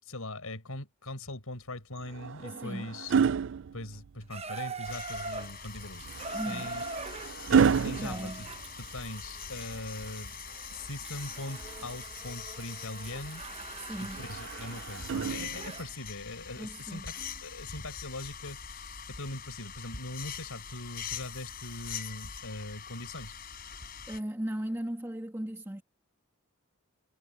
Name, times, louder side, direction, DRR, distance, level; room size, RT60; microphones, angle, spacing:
voice 1, 0.0-3.1 3.7-6.8 7.5-8.4 8.8-10.4 10.7-13.4 14.0-23.4, left 2 dB, 90° left, 5.9 m, -41 dB
sound 1, 2.0-4.4 6.0-9.2 11.0-12.1 14.1-15.9 17.2-17.4, right 6 dB, 60° right, 0.4 m, -31 dB
voice 2, 2.4-2.9 6.3-6.7 7.8-8.5 13.8-14.3 16.6-17.1 24.1-25.8, right 1 dB, 10° right, 1.5 m, -37 dB
Water tap faucet / Bathtub (filling or washing), 4.3-16.0 16.9-17.0, right 4 dB, 30° right, 0.9 m, -43 dB
sound 2, 4.8-24.2, left 7 dB, 45° left, 4.9 m, -43 dB
head